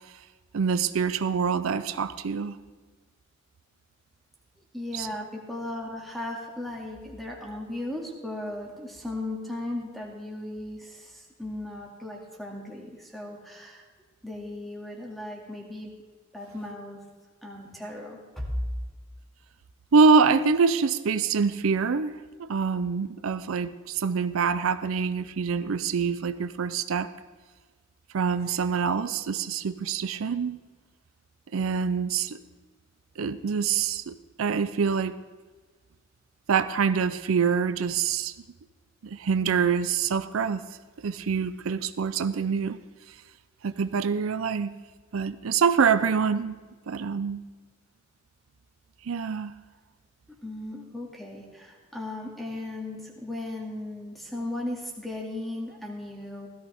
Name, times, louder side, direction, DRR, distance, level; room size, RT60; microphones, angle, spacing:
voice 1, 0.5-2.6 4.9-5.1 19.9-27.1 28.1-30.6 31.5-32.4 33.2-35.2 36.5-38.3 39.0-40.6 41.0-42.8 43.6-44.7 45.1-47.4 49.0-49.5, right 5 dB, 80° right, 0.5 m, -25 dB
voice 2, 4.7-13.8 14.2-15.9 16.3-17.0 17.4-18.5 50.4-56.5, left 1 dB, ahead, 2.2 m, -36 dB
16.5 x 13.5 x 3.5 m
head